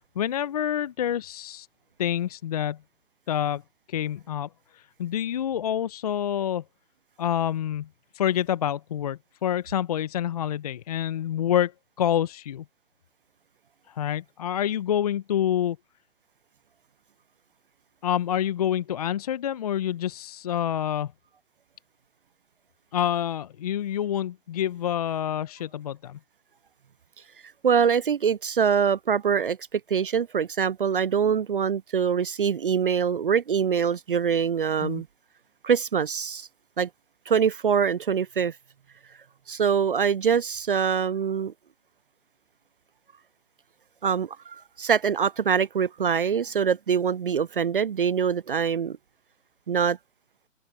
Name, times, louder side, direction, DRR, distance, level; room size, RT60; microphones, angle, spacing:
voice 1, 0.2-1.7 2.0-2.8 3.3-3.6 3.9-6.6 7.2-7.9 8.1-11.7 12.0-12.6 13.9-15.8 18.0-21.1 22.9-26.2 34.8-35.0, left 10 dB, 30° left, 0.7 m, -27 dB
voice 2, 27.6-35.1 35.6-36.5 36.8-36.9 37.3-38.5 39.5-41.5 44.0-49.0 49.7-50.0, right 7 dB, 45° right, 0.4 m, -24 dB
open air
hypercardioid pair, 145°, 38 cm